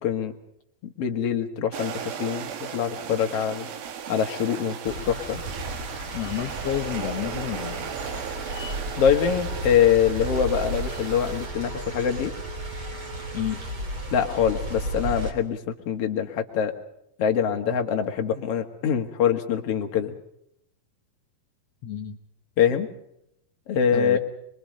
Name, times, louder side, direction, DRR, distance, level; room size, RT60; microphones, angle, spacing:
voice 1, 0.0-0.3 0.8-3.7 4.1-5.4 9.0-12.3 14.1-16.7 17.2-20.1 22.6-22.9 23.7-24.2, left 8 dB, 50° left, 5 dB, 2.1 m, -24 dB
sound 1, 1.7-11.5, right 8 dB, 75° right, 3.3 m, -37 dB
sound 2, 4.8-15.3, equal, 35° right, 3.7 m, -34 dB
voice 2, 6.1-8.3 13.3-13.6 21.8-22.2 23.9-24.2, left 11 dB, 80° left, 5 dB, 1.4 m, -31 dB
sound 3, 6.6-13.5, right 10 dB, 55° right, 2.4 m, -44 dB
24.5 x 23.5 x 5.3 m, 0.77 s
omnidirectional pair, 4.4 m